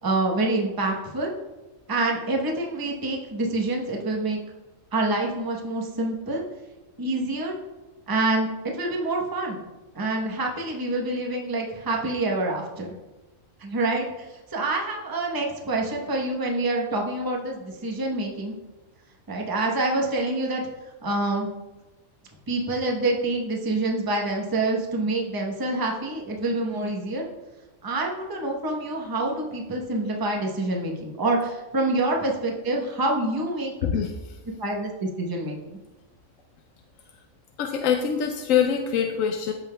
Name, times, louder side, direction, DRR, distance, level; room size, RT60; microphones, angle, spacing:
voice 1, 0.0-1.3 1.9-4.4 4.9-6.4 7.0-7.6 8.1-9.6 9.9-12.9 13.6-18.6 19.3-20.6 21.0-21.5 22.5-27.3 27.8-33.7 34.6-35.6, right 2 dB, 20° right, 0 dB, 0.9 m, -26 dB
voice 2, 37.6-39.5, left 8 dB, 80° left, 4 dB, 1.0 m, -24 dB
14.0 x 5.5 x 2.2 m, 1.1 s
omnidirectional pair, 1.4 m